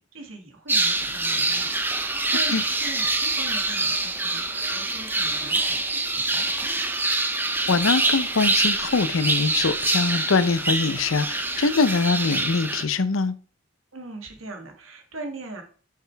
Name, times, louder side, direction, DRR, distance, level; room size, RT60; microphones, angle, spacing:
voice 1, 0.0-1.7 2.1-6.9 13.9-15.6, right 2 dB, 80° right, 2.0 m, -40 dB
sound 1, 0.7-12.8, right 2 dB, 10° right, 0.6 m, -25 dB
voice 2, 7.7-13.3, left 4 dB, 80° left, 0.6 m, -23 dB
8.1 x 6.5 x 3.4 m
head